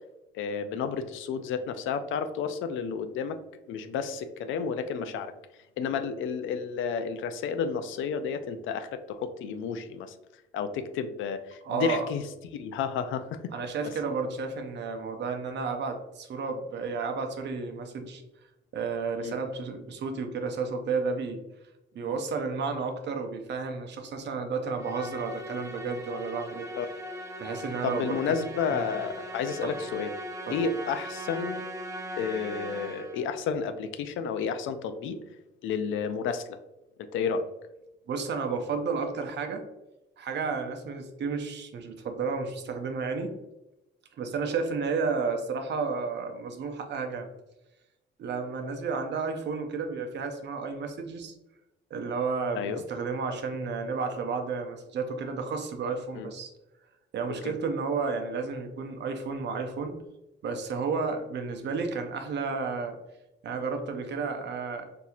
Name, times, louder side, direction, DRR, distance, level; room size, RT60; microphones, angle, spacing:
voice 1, 0.3-3.4 3.7-5.3 5.8-10.1 10.5-12.2 12.5-13.5 19.2-19.3 22.1-22.2 26.7-26.9 27.8-30.1 30.5-31.7 32.2-35.2 35.6-36.6 37.0-37.5 52.5-52.8 56.1-56.3 57.4-57.5, left 6 dB, 80° left, 9 dB, 0.4 m, -31 dB
voice 2, 11.6-12.1 13.5-18.2 18.7-21.4 21.9-26.7 27.4-28.4 28.7-28.9 29.6-29.7 30.5-30.6 38.1-39.6 40.2-43.4 44.2-47.3 48.2-51.3 51.9-56.5 57.1-60.0 60.4-63.0 63.4-64.9, right 4 dB, 60° right, 5 dB, 0.6 m, -32 dB
Musical instrument, 24.8-33.3, equal, 15° right, 0.6 m, -39 dB
4.1 x 2.7 x 2.4 m, 0.95 s
cardioid pair, 90°, 20 cm